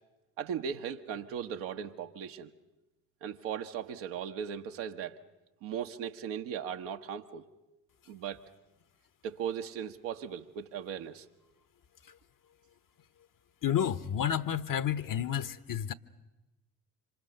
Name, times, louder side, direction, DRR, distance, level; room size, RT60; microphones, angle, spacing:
voice 1, 0.4-2.5 3.2-5.2 5.6-7.5 8.1-8.4 9.2-11.3, right 8 dB, 70° right, 1.4 m, -38 dB
voice 2, 13.6-15.9, left 9 dB, 45° left, 1.2 m, -30 dB
26.5 x 26.5 x 6.8 m
figure-of-eight pair, 45°, 45 cm